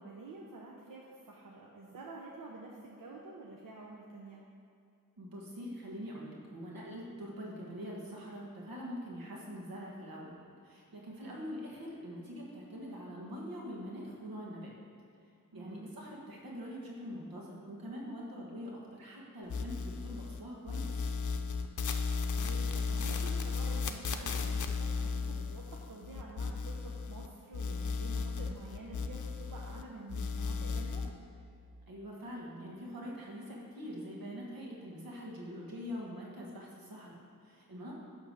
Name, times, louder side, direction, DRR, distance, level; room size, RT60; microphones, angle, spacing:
voice 1, 0.0-4.4 11.2-11.4 15.5-15.9 22.3-31.1 37.9-38.0, right 2 dB, 70° right, -2 dB, 0.9 m, -49 dB
voice 2, 5.2-14.7 15.2-20.9 31.9-38.0, equal, 90° right, -3 dB, 1.7 m, -44 dB
sound 1, 19.5-20.4 20.7-27.3 27.5-29.8 30.1-31.1, left 5 dB, 60° left, 0.6 m, -35 dB
11.0 x 3.6 x 6.4 m, 2.4 s
wide cardioid pair, 80°, 34 cm